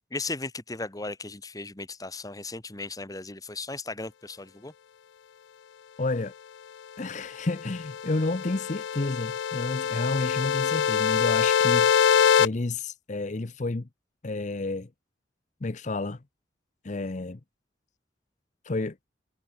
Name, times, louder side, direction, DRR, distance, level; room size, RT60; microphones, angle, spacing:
voice 1, 0.1-4.7, left 3 dB, 20° left, 1.3 m, -36 dB
voice 2, 6.0-6.3 7.0-12.1 12.4-13.9 14.2-14.9 15.6-16.2 16.8-17.4 18.6-19.1, left 2 dB, 40° left, 0.7 m, -30 dB
sound 1, 7.5-12.5, left 7 dB, 75° left, 0.4 m, -24 dB
head